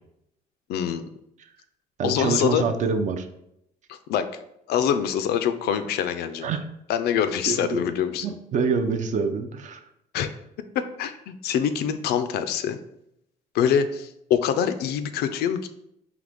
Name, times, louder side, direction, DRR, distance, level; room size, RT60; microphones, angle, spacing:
voice 1, 0.7-1.0 2.0-2.6 3.9-4.3 4.7-6.5 6.9-8.4 10.1-10.3 11.0-12.8 13.5-15.7, left 8 dB, 70° left, 10 dB, 0.4 m, -25 dB
voice 2, 2.0-3.3 6.4-6.6 7.5-7.8 8.2-9.8, right 5 dB, 45° right, 7 dB, 0.5 m, -26 dB
3.9 x 2.9 x 3.4 m, 0.79 s
cardioid pair, 110°, 17 cm